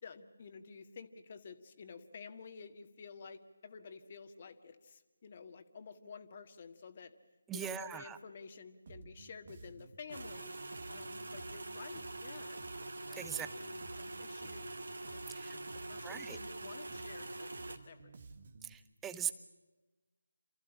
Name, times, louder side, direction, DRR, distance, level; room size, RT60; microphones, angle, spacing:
voice 1, 0.0-7.1 7.5-10.6 10.9-14.8 15.1-15.2 15.5-18.1, left 5 dB, 35° left, 8 dB, 1.8 m, -51 dB
voice 2, 7.5-8.2 13.2-13.5 15.3-15.5 16.0-16.4 18.6-19.3, right 9 dB, 10° right, 12 dB, 0.8 m, -40 dB
Bass guitar, 8.9-18.7, right 3 dB, 45° right, 1.6 m, -54 dB
sound 1, 10.1-17.8, right 2 dB, 65° right, 2.4 m, -45 dB
28.5 x 14.5 x 9.9 m, 1.2 s
figure-of-eight pair, 155°, 0 cm